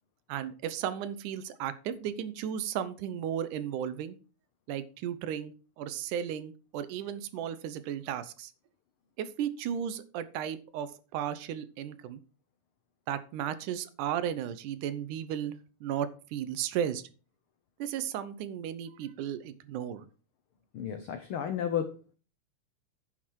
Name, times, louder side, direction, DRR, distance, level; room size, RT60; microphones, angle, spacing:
voice 1, 0.3-4.2 4.7-8.5 9.2-12.2 13.1-17.0 17.8-20.1, right 9 dB, 85° right, 13 dB, 2.3 m, -35 dB
voice 2, 20.7-22.2, left 9 dB, 90° left, 8 dB, 1.1 m, -33 dB
10.0 x 6.4 x 4.6 m, 0.36 s
omnidirectional pair, 3.5 m